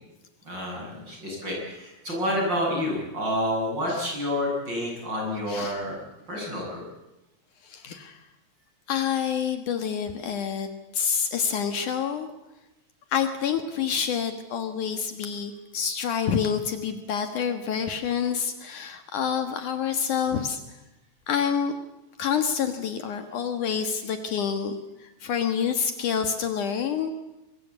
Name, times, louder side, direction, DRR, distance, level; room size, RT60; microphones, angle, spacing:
voice 1, 0.4-6.0 6.3-6.9, equal, 30° right, -1 dB, 8.4 m, -29 dB
voice 2, 5.5-5.8 7.6-8.2 8.9-10.7 10.9-12.3 13.1-20.6 21.3-21.7 22.2-24.8 25.2-27.1, left 7 dB, 65° left, 7 dB, 2.9 m, -27 dB
23.5 x 23.5 x 8.3 m, 0.96 s
omnidirectional pair, 4.0 m